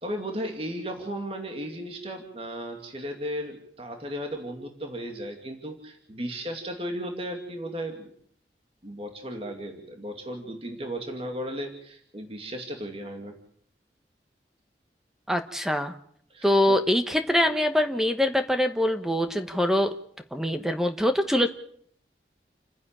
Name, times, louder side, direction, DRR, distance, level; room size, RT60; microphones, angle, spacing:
voice 1, 0.0-8.1 8.8-13.4 16.3-16.8, equal, 35° right, 4 dB, 2.5 m, -35 dB
voice 2, 15.3-15.9 16.4-19.9 20.3-21.5, left 1 dB, 5° right, 7 dB, 1.2 m, -24 dB
29.5 x 10.5 x 8.9 m, 0.64 s
head